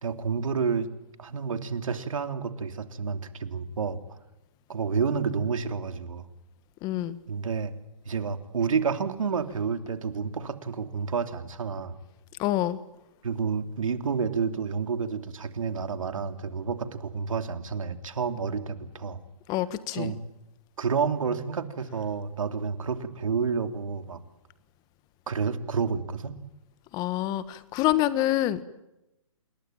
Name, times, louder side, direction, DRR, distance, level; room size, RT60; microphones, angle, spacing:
voice 1, 0.0-0.9 1.2-4.0 4.7-6.3 7.3-7.7 8.0-12.0 13.2-19.2 19.9-20.2 20.8-24.2 25.3-26.4, right 5 dB, 70° right, 7 dB, 3.0 m, -29 dB
voice 2, 6.8-7.2 12.4-12.8 19.5-20.1 26.9-28.6, left 14 dB, 20° left, 14 dB, 1.5 m, -26 dB
27.5 x 21.5 x 9.1 m, 0.94 s
hypercardioid pair, 140°, 18 cm